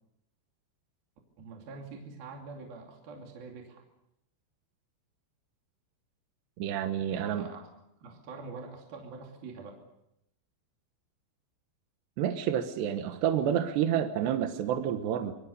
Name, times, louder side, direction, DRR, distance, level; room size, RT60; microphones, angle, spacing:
voice 1, 1.4-3.8 7.1-7.6 8.0-9.8, right 4 dB, 55° right, 1 dB, 4.3 m, -45 dB
voice 2, 6.6-7.5 12.2-15.3, right 9 dB, 70° right, 7 dB, 3.1 m, -29 dB
26.0 x 23.5 x 6.7 m, 0.84 s
omnidirectional pair, 5.6 m